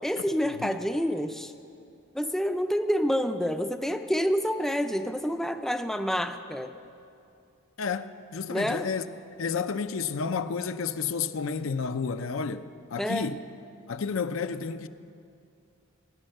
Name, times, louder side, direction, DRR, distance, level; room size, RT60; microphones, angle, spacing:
voice 1, 0.0-1.5 2.1-6.7 8.5-8.9 13.0-13.3, equal, ahead, 0.4 m, -28 dB
voice 2, 7.8-9.0 9.4-13.5 13.9-14.9, left 5 dB, 75° left, 0.5 m, -31 dB
17.0 x 9.9 x 6.6 m
head